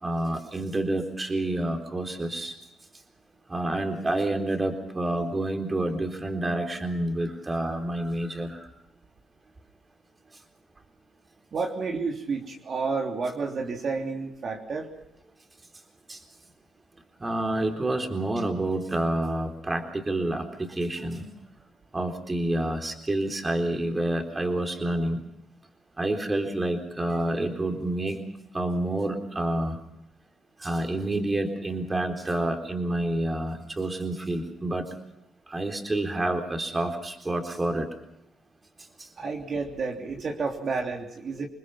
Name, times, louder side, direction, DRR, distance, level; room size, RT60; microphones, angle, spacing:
voice 1, 0.0-2.6 3.5-8.7 16.1-16.2 17.2-21.3 21.9-25.2 26.0-28.2 28.5-29.8 30.6-34.9 35.5-37.9, right 1 dB, 20° right, 4 dB, 3.9 m, -28 dB
voice 2, 11.5-14.9 39.2-41.5, right 4 dB, 50° right, 1 dB, 3.2 m, -30 dB
27.5 x 21.0 x 5.7 m, 0.83 s
cardioid pair, 90°, 0 cm